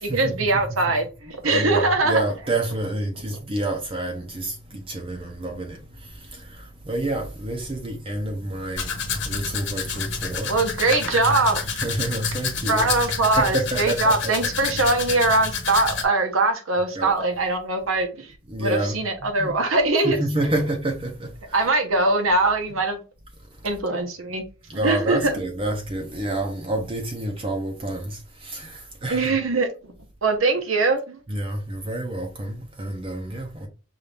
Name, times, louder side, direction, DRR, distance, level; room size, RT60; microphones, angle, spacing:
voice 1, 0.0-2.2 10.5-11.6 12.7-18.3 18.6-20.2 21.5-23.0 23.6-24.4 24.8-25.3 29.1-29.7 30.2-31.2, right 3 dB, 85° right, 1.1 m, -22 dB
voice 2, 1.4-4.5 4.9-5.8 6.9-8.8 9.3-10.5 11.3-11.4 11.7-12.9 13.4-14.3 14.6-14.7 17.0-17.1 18.5-18.9 19.4-19.5 20.0-21.3 24.7-28.1 28.5-28.7 29.0-29.4 31.3-33.7, right 1 dB, 25° right, 0.6 m, -28 dB
Domestic sounds home sounds, 8.8-16.0, left 5 dB, 60° left, 1.1 m, -29 dB
5.5 x 2.6 x 3.4 m
head